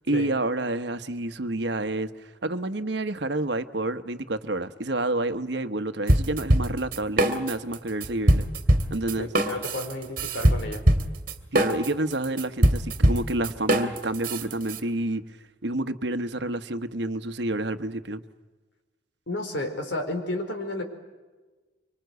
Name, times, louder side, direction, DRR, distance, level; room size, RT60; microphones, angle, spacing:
voice 1, 0.1-2.1 2.4-8.5 8.9-9.3 11.5-15.2 15.6-18.2, right 2 dB, 70° right, 10 dB, 1.2 m, -29 dB
sound 1, 6.1-7.8 8.0-14.8, right 1 dB, 50° right, 2.1 m, -22 dB
voice 2, 9.2-10.8 19.3-20.8, left 1 dB, 85° left, 5 dB, 4.5 m, -32 dB
25.0 x 25.0 x 8.1 m, 1.3 s
head